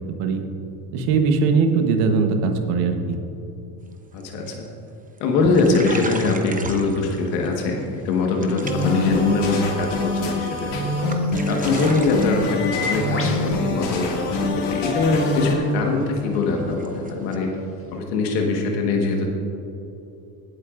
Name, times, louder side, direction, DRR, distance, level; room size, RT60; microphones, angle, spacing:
voice 1, 0.9-3.2, right 4 dB, 85° right, 5 dB, 1.2 m, -20 dB
sound 1, 3.9-4.2 4.5-4.9 5.2-5.3 5.4-7.5 7.8-8.1 8.4-9.1 9.4-10.1 10.5-10.6 10.9-17.4, right 3 dB, 15° right, 0.8 m, -37 dB
voice 2, 4.1-4.7 5.2-10.9 11.5-17.5 17.9-19.3, left 3 dB, 85° left, 1 dB, 1.6 m, -22 dB
sound 2, 5.8-18.0, left 5 dB, 30° left, 1.6 m, -40 dB
sound 3, 8.6-15.5, left 2 dB, 65° left, 2.4 m, -25 dB
21.5 x 8.1 x 2.5 m, 2.8 s
supercardioid pair, 85°, 46 cm